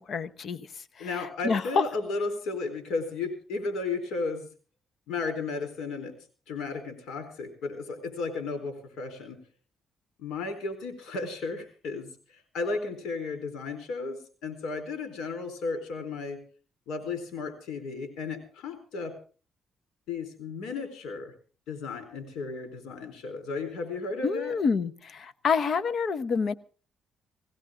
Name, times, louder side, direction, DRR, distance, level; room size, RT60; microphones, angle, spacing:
voice 1, 0.1-1.8 24.2-26.5, left 5 dB, 55° left, 14 dB, 1.0 m, -28 dB
voice 2, 1.0-4.5 5.1-6.1 6.5-9.4 10.2-12.1 12.5-16.4 16.9-19.2 20.1-21.3 21.7-24.6, left 3 dB, 85° left, 7 dB, 4.1 m, -34 dB
18.5 x 16.5 x 3.8 m, 0.38 s
cardioid pair, 90°, 0 cm